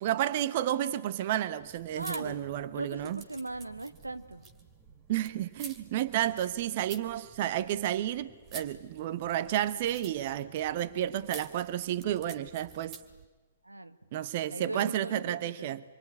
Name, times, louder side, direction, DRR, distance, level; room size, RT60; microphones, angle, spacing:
voice 1, 0.0-3.2 5.1-13.0 14.1-15.8, right 12 dB, 45° right, 1.0 m, -31 dB
sound 1, 1.6-13.2, right 5 dB, 25° right, 2.5 m, -50 dB
voice 2, 1.9-4.5 13.6-14.0 14.5-15.7, right 2 dB, 85° right, 1.2 m, -39 dB
26.0 x 23.5 x 9.7 m
figure-of-eight pair, 115°, 0 cm